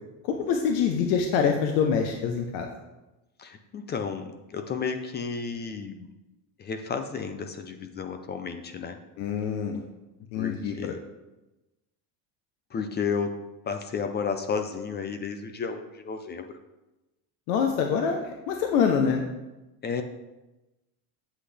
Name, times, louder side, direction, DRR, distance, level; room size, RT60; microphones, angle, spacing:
voice 1, 0.2-2.7 9.2-9.8 10.3-10.9 17.5-19.2, left 6 dB, 85° left, 3 dB, 1.0 m, -25 dB
voice 2, 3.4-6.1 6.6-9.0 10.3-11.0 12.7-16.6 19.8-20.0, left 5 dB, 25° left, 7 dB, 0.4 m, -32 dB
8.1 x 7.6 x 3.4 m, 1.0 s
cardioid pair, 140°, 48 cm